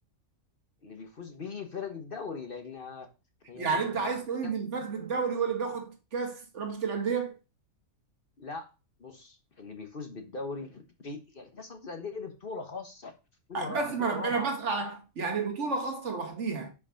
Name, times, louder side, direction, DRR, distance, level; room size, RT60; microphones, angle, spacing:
voice 1, 0.8-3.1 3.5-4.2 4.4-4.5 8.4-8.7 9.0-13.1 13.5-14.5, left 4 dB, 45° left, 1.1 m, -40 dB
voice 2, 3.6-7.3 13.5-16.7, right 5 dB, 55° right, 1.5 m, -31 dB
5.3 x 4.8 x 5.6 m
omnidirectional pair, 1.5 m